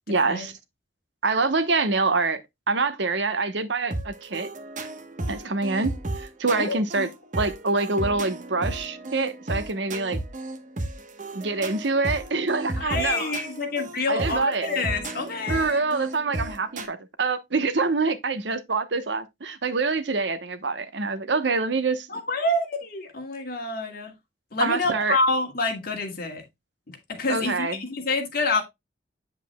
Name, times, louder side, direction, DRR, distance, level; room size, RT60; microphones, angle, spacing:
voice 1, 0.1-0.5 1.2-2.4 2.7-4.5 5.3-7.1 7.4-10.2 11.3-13.3 14.1-14.7 15.5-22.1 24.6-25.2 27.3-27.7, right 3 dB, 75° right, 1.0 m, -25 dB
sound 1, 3.9-16.9, right 2 dB, 45° right, 1.1 m, -34 dB
voice 2, 6.6-7.1 12.8-15.8 22.1-24.1 24.5-26.4 26.9-28.6, left 2 dB, 55° left, 2.1 m, -27 dB
8.2 x 7.4 x 2.2 m
head